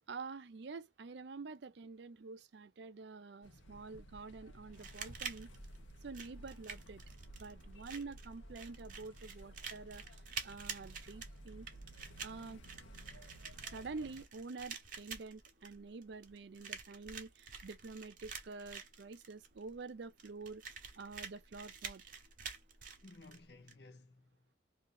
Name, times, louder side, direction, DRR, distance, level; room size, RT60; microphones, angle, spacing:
voice 1, 0.1-5.5 6.0-7.0 7.4-11.7 12.2-12.6 13.6-22.0, right 4 dB, 65° right, 0.5 m, -48 dB
sound 1, 3.4-14.3, right 1 dB, 85° left, 1.0 m, -54 dB
voice 2, 3.5-4.0 23.0-24.5, left 2 dB, 60° left, 0.7 m, -58 dB
sound 2, 4.7-23.7, right 6 dB, 45° right, 0.9 m, -48 dB
2.8 x 2.7 x 3.7 m
head